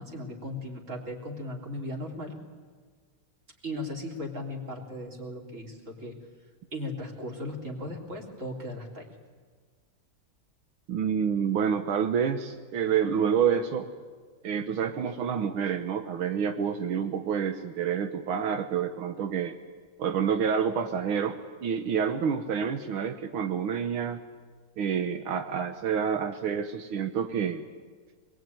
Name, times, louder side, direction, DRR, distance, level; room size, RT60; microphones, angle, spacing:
voice 1, 0.0-2.4 3.6-6.2 6.7-9.2, left 1 dB, 35° right, 1 dB, 3.7 m, -37 dB
voice 2, 10.9-13.9 14.4-19.5 20.0-24.2 24.8-27.6, right 7 dB, 80° right, 7 dB, 1.9 m, -28 dB
25.0 x 21.5 x 9.2 m, 1.5 s
omnidirectional pair, 2.3 m